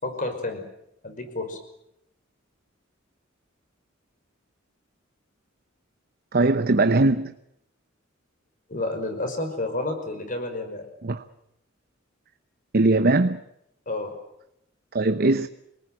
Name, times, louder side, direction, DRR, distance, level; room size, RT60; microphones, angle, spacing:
voice 1, 0.0-0.6 1.0-1.6 8.7-10.9 13.9-14.1, left 2 dB, 40° left, 5.6 m, -30 dB
voice 2, 6.3-7.3 11.0-11.2 12.7-13.4 14.9-15.5, right 2 dB, 50° right, 0.9 m, -20 dB
27.5 x 19.0 x 9.3 m
head